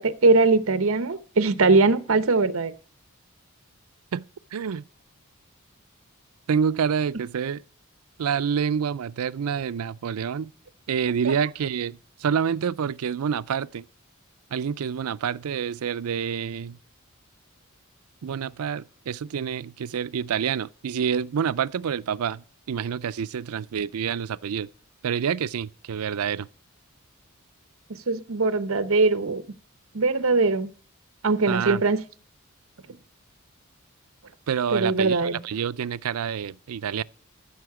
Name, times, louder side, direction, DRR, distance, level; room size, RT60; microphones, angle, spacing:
voice 1, 0.0-2.7 11.2-11.3 27.9-29.4 29.9-30.7 31.2-32.0 34.7-35.4, right 3 dB, 65° right, 0.8 m, -21 dB
voice 2, 4.5-4.8 6.5-7.6 8.2-10.5 10.9-13.8 14.5-16.8 18.2-24.7 25.0-26.5 31.5-31.8 34.5-37.0, right 7 dB, 90° right, 0.4 m, -27 dB
14.0 x 6.5 x 4.8 m
head